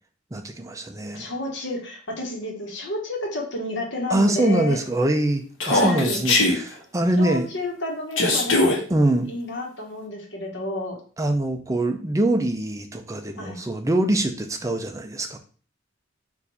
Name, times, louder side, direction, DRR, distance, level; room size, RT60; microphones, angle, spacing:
voice 1, 0.3-1.3 4.1-7.5 8.9-9.3 11.2-15.4, right 1 dB, 15° right, 5 dB, 0.5 m, -23 dB
voice 2, 1.1-4.8 5.7-6.2 7.2-8.8 9.3-11.0 13.4-13.6, left 1 dB, 60° left, 0 dB, 1.2 m, -30 dB
Human voice, 5.6-6.6 8.2-8.8, left 2 dB, 75° left, 1.1 m, -20 dB
4.6 x 2.6 x 4.1 m, 0.41 s
head